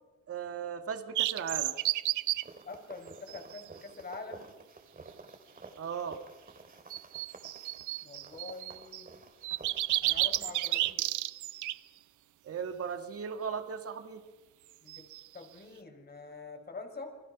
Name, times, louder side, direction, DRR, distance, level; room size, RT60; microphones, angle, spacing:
voice 1, 0.3-1.7 5.8-6.2 12.4-14.2, right 7 dB, 50° right, 7 dB, 2.0 m, -37 dB
sound 1, 1.2-2.4 3.3-3.7 6.9-9.0 9.4-11.8 14.9-15.2, right 15 dB, 80° right, 0.7 m, -32 dB
sound 2, 2.3-10.9, right 3 dB, 30° right, 3.0 m, -52 dB
voice 2, 2.6-4.5 8.0-9.1 10.0-11.1 14.8-15.1 15.3-17.2, left 3 dB, 30° left, 5 dB, 5.5 m, -45 dB
29.0 x 21.0 x 6.0 m, 1.2 s
cardioid pair, 90°, 30 cm